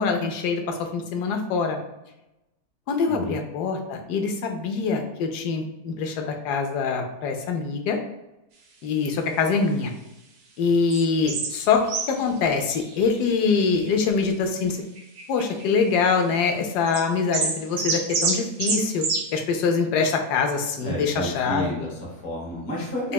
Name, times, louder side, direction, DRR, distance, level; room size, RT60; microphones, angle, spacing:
voice 1, 0.0-1.8 2.9-8.0 8.8-9.9 10.6-11.8 12.1-14.8 15.3-19.0 19.3-21.7 23.0-23.1, left 5 dB, 85° left, 4 dB, 1.2 m, -24 dB
voice 2, 3.1-3.4 20.8-23.1, equal, 65° left, -4 dB, 1.4 m, -31 dB
sound 1, 10.9-11.0 11.3-11.5 11.9-12.2 12.6-13.5 13.9-14.0 15.0-15.6 16.9-17.0 17.3-19.3, right 4 dB, 70° right, 1.1 m, -27 dB
5.5 x 2.2 x 2.3 m, 0.93 s
omnidirectional pair, 1.7 m